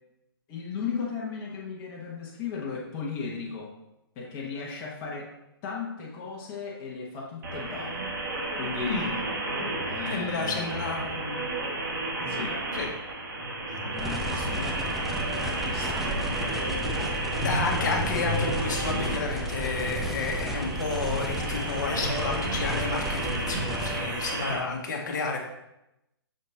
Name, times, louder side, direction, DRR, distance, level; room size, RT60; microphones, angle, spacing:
voice 1, 0.5-3.7 4.2-5.3 5.6-8.0 8.5-9.1 9.9-10.8 12.3-12.6 13.8-16.1, left 5 dB, 25° left, -3 dB, 1.2 m, -36 dB
sound 1, 7.4-24.6, right 1 dB, 50° right, 1.5 m, -32 dB
voice 2, 8.8-9.2 9.6-9.7 10.1-11.4 12.2-12.3 12.7-12.9 13.7-13.8 17.4-25.4, left 4 dB, 45° left, 2 dB, 1.3 m, -31 dB
sound 2, 14.0-24.0, equal, ahead, 0.4 m, -34 dB
6.5 x 4.2 x 4.1 m, 0.89 s
figure-of-eight pair, 130°, 13 cm